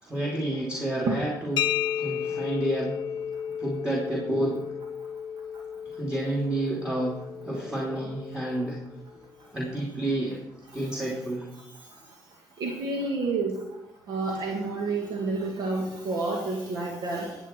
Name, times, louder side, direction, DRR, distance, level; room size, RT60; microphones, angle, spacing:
voice 1, 0.0-1.7 2.0-3.0 3.6-4.7 5.8-8.8 9.5-10.4 10.7-11.5, right 1 dB, 10° right, -2 dB, 2.9 m, -30 dB
sound 1, 1.6-9.1, left 9 dB, 80° left, 0.5 m, -33 dB
voice 2, 12.6-13.6 14.1-17.4, right 3 dB, 70° right, 0 dB, 2.0 m, -29 dB
18.0 x 8.1 x 4.4 m, 0.88 s
supercardioid pair, 70°, 8 cm